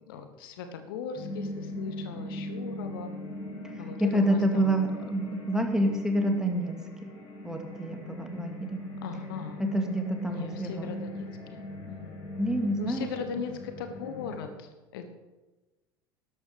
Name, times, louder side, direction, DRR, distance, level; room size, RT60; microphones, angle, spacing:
voice 1, 0.1-3.1 3.8-4.7 5.2-5.3 9.0-9.6 10.2-11.6 11.9-12.1 12.8-15.1, left 6 dB, 70° left, 8 dB, 1.4 m, -39 dB
sound 1, 1.1-14.5, equal, 35° left, 5.5 m, -40 dB
voice 2, 4.0-6.7 7.0-7.1 7.4-8.5 9.6-10.9 12.4-13.1, right 1 dB, 5° right, 3 dB, 2.5 m, -27 dB
12.5 x 11.5 x 5.2 m, 1.1 s
figure-of-eight pair, 70°, 12 cm